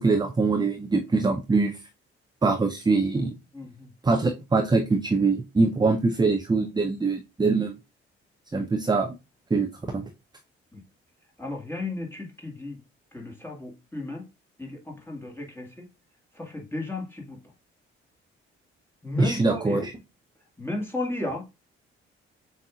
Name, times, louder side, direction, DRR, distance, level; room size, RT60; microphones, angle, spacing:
voice 1, 0.0-1.8 2.4-3.3 4.0-7.7 8.5-9.2 9.5-9.7 9.9-10.0 19.2-19.9, right 3 dB, 15° right, 0.6 m, -23 dB
voice 2, 3.5-3.9 5.8-5.9 8.5-8.6 10.7-10.8 11.4-12.8 13.1-14.2 14.6-15.9 16.3-17.4 19.0-19.9 20.6-21.5, left 2 dB, 10° left, 1.9 m, -34 dB
7.2 x 2.7 x 2.4 m
figure-of-eight pair, 40°, 31 cm